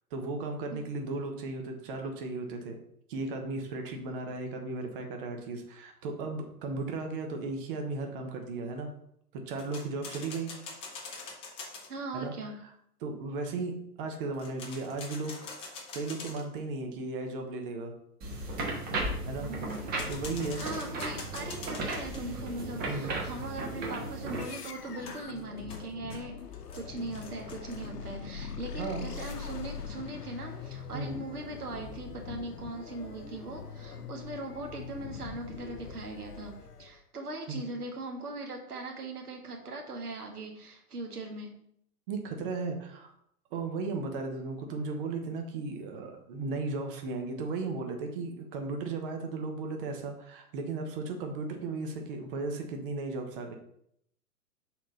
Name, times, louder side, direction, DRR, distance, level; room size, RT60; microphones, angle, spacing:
voice 1, 0.1-2.8 3.1-8.9 9.3-10.5 12.1-12.3 13.0-17.9 19.3-19.5 20.1-20.6 22.9-23.1 28.8-29.1 30.9-31.2 37.5-37.6 42.1-43.1 43.5-53.6, right 3 dB, 35° right, 4 dB, 1.0 m, -35 dB
sound 1, 9.6-11.9 14.3-16.6 19.7-22.2 25.1-27.9, left 4 dB, 10° left, 0.6 m, -44 dB
voice 2, 11.9-12.6 19.5-19.9 20.5-26.4 26.7-36.5 36.8-41.5, right 2 dB, 70° right, 2 dB, 1.5 m, -40 dB
sound 2, 18.2-24.4, right 2 dB, 20° right, 1.2 m, -35 dB
sound 3, 24.3-37.0, left 6 dB, 75° left, 0.7 m, -42 dB
6.2 x 4.2 x 4.0 m, 0.71 s
figure-of-eight pair, 110°, 47 cm